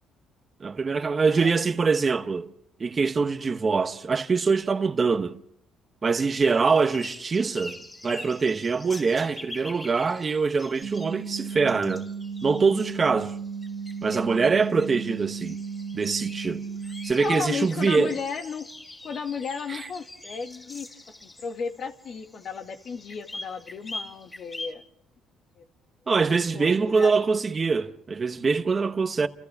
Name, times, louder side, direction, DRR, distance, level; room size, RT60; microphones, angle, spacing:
voice 1, 0.6-2.5 2.8-5.4 6.0-7.8 8.0-12.0 12.4-13.3 14.0-15.6 15.9-16.6 17.0-18.1 19.7-19.8 26.1-29.3, right 4 dB, 30° right, 1.0 m, -24 dB
voice 2, 1.2-1.6 17.2-18.7 19.0-20.9 21.2-24.8 25.6-25.7 26.5-27.1, left 6 dB, 50° left, 2.1 m, -34 dB
sound 1, 6.4-24.7, left 2 dB, 20° left, 4.5 m, -44 dB
sound 2, 10.8-17.1, right 5 dB, 60° right, 2.5 m, -35 dB
29.5 x 28.5 x 3.6 m
cardioid pair, 105°, 0 cm